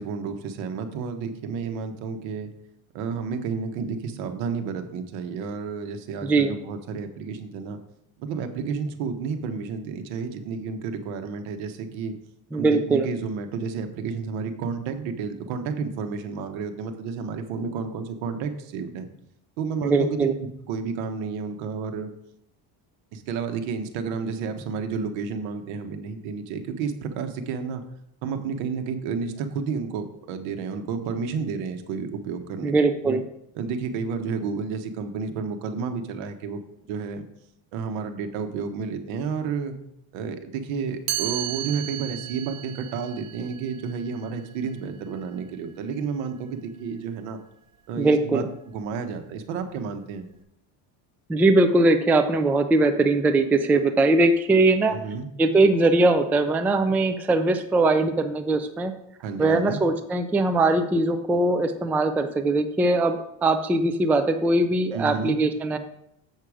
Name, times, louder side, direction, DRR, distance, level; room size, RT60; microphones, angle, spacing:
voice 1, 0.0-2.5 2.9-7.8 8.2-12.1 12.5-19.1 19.6-20.3 20.7-22.1 23.1-27.8 28.2-32.7 33.0-33.2 33.5-36.6 36.9-37.3 37.7-39.8 40.1-47.4 47.9-50.3 54.9-55.3 59.2-59.8 64.9-65.4, right 5 dB, 80° right, 7 dB, 1.3 m, -31 dB
voice 2, 6.2-6.5 12.5-13.1 19.8-20.3 32.6-33.2 48.0-48.5 51.3-55.0 55.4-58.9 59.4-65.8, right 2 dB, 5° right, 7 dB, 0.3 m, -21 dB
Chime, 41.1-46.9, right 15 dB, 50° right, 0.8 m, -36 dB
7.5 x 6.6 x 4.9 m, 0.77 s
cardioid pair, 135°, 45 cm